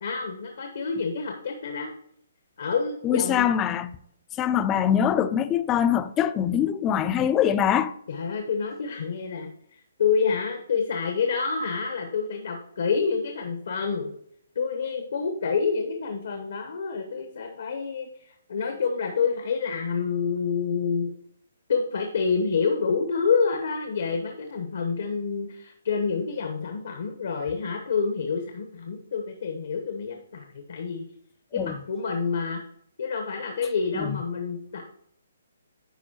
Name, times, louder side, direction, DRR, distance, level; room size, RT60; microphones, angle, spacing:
voice 1, 0.0-1.9 2.6-3.5 8.1-9.5 10.0-14.1 14.5-21.1 21.7-31.1 31.5-32.6 33.0-34.8, left 5 dB, 65° left, 1.0 m, -28 dB
voice 2, 3.0-4.0 4.4-7.9 31.5-31.7 34.0-34.2, left 9 dB, 20° left, 0.4 m, -23 dB
10.5 x 4.3 x 2.9 m
hypercardioid pair, 140°, 0 cm